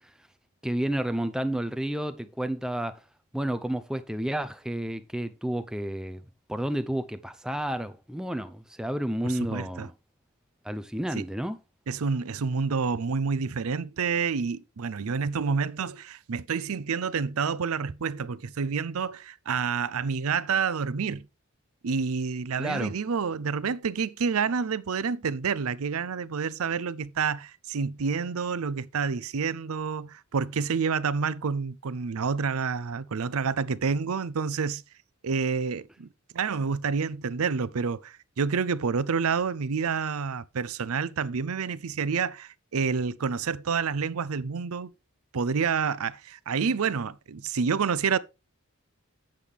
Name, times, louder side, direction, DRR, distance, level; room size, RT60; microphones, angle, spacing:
voice 1, 0.6-3.0 3.3-6.2 6.5-9.9 10.6-11.6 22.6-22.9, right 1 dB, 5° right, 0.5 m, -31 dB
voice 2, 9.2-9.9 11.1-11.2 11.9-21.3 21.8-34.8 35.2-36.1 36.3-44.9 45.3-48.2, right 5 dB, 80° right, 0.5 m, -28 dB
8.3 x 7.5 x 3.4 m
head